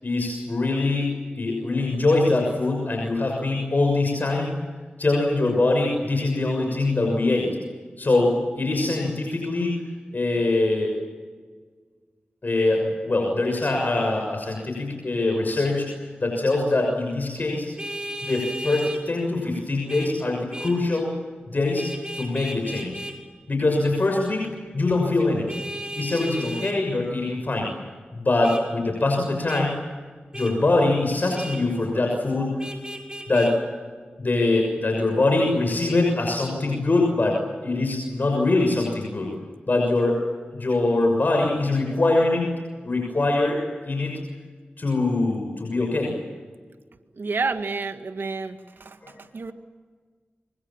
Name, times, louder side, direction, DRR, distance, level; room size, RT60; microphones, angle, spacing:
voice 1, 0.0-4.5 5.0-7.6 8.0-9.8 10.1-10.9 12.4-17.7 18.2-21.1 21.5-21.9 22.1-23.0 23.5-25.7 25.9-27.7 28.1-29.8 30.3-32.7 33.3-33.5 34.2-39.3 39.7-40.2 40.5-42.5 42.8-43.6 43.8-44.2 44.8-46.1 49.0-49.1, left 2 dB, 55° left, 1 dB, 6.6 m, -23 dB
Vehicle horn car horn honking, 17.8-19.0 19.9-20.1 20.5-20.8 21.8-23.2 25.5-26.8 28.4-28.6 29.5-29.6 30.3-30.5 31.3-31.6 32.6-33.5, right 1 dB, 20° right, 5.7 m, -34 dB
voice 2, 47.2-48.6 49.3-49.5, right 4 dB, 70° right, 8 dB, 1.9 m, -28 dB
26.5 x 25.0 x 7.4 m, 1.5 s
cardioid pair, 40°, 4 cm